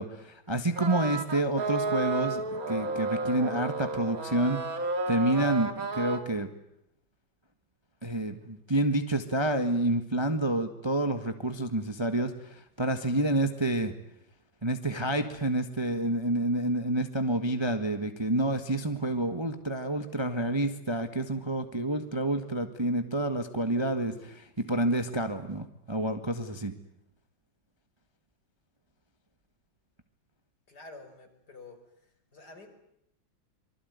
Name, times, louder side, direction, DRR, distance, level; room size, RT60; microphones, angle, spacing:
voice 1, 0.0-4.6 5.1-6.5 8.0-13.9 14.6-26.7, right 1 dB, 15° right, 8 dB, 1.5 m, -29 dB
sound 1, 0.8-6.2, right 3 dB, 45° right, 2.4 m, -32 dB
voice 2, 30.7-31.8 32.3-32.7, left 3 dB, 55° left, 5 dB, 5.6 m, -48 dB
26.0 x 24.0 x 9.5 m, 0.78 s
omnidirectional pair, 2.1 m